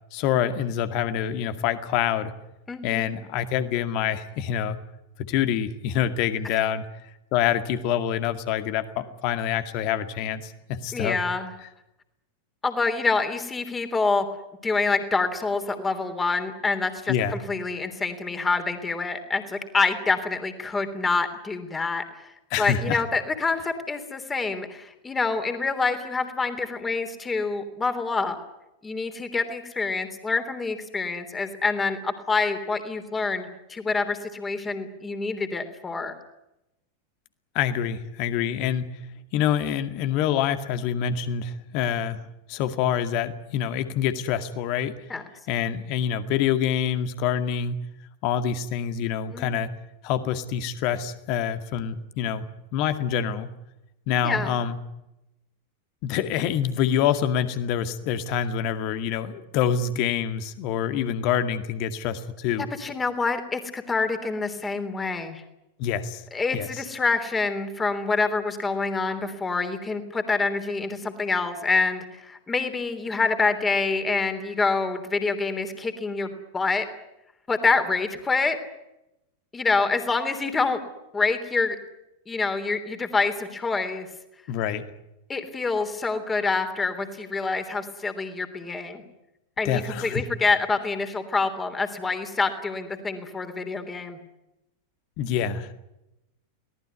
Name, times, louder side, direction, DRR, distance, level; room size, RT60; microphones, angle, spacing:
voice 1, 0.1-2.3 2.8-4.8 5.2-6.8 7.3-11.2 11.6-11.7 17.1-17.4 22.5-23.0 37.5-38.9 39.3-42.2 42.5-45.0 45.5-47.8 48.2-49.7 50.0-52.4 52.7-53.5 54.1-54.8 56.0-62.7 65.8-66.2 66.5-66.8 84.5-84.8 89.6-90.2 95.2-95.7, left 9 dB, 45° left, 10 dB, 2.1 m, -26 dB
voice 2, 2.7-3.1 6.5-6.6 10.9-11.5 12.6-14.3 14.6-22.3 22.6-28.4 28.8-36.1 45.1-45.2 49.3-49.5 54.2-54.5 62.8-65.4 66.3-76.8 77.5-78.6 79.5-80.8 81.1-81.8 82.3-84.1 85.3-89.0 89.6-94.2, left 4 dB, 15° left, 8 dB, 3.3 m, -26 dB
24.0 x 18.5 x 9.7 m, 0.90 s
figure-of-eight pair, 90°, 0 cm